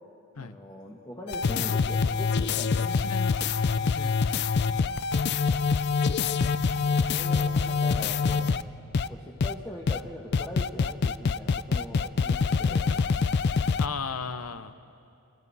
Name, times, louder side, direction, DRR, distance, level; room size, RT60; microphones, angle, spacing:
voice 1, 0.4-2.9 6.8-8.7 9.0-12.9, equal, 15° left, -2 dB, 1.4 m, -42 dB
sound 1, 1.3-8.6 8.9-9.1 9.4-9.5 9.9-10.0 10.3-13.9, left 5 dB, 50° left, 0.4 m, -25 dB
voice 2, 2.9-3.4 3.8-4.3 8.7-9.0 12.9-13.0 13.8-14.8, left 4 dB, 85° left, 10 dB, 0.9 m, -36 dB
28.5 x 24.5 x 4.2 m, 2.6 s
head